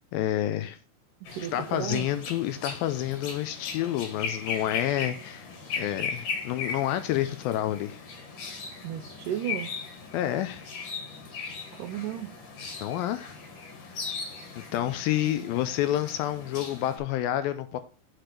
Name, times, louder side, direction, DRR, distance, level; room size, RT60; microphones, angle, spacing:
voice 1, 0.1-0.8 1.5-5.5 5.8-8.0 10.1-10.7 12.8-13.4 13.8-14.1 14.6-17.8, left 12 dB, 80° left, 2.2 m, -29 dB
sound 1, 1.2-17.0, left 5 dB, 65° left, 3.3 m, -38 dB
voice 2, 1.2-2.1 8.8-9.7 11.7-12.3 15.2-15.5, right 11 dB, 80° right, 1.9 m, -34 dB
6.1 x 5.0 x 5.8 m
omnidirectional pair, 4.5 m